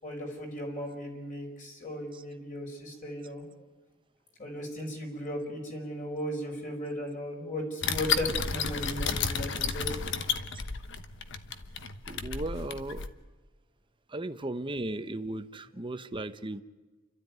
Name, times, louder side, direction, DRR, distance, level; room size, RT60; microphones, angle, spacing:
voice 1, 0.0-3.5 4.4-10.0, equal, 40° left, 1 dB, 5.0 m, -36 dB
sound 1, 7.8-13.1, left 5 dB, 60° left, 1.2 m, -32 dB
voice 2, 12.1-13.1 14.1-16.6, right 2 dB, 25° right, 10 dB, 0.9 m, -36 dB
29.0 x 13.0 x 9.4 m, 1.3 s
head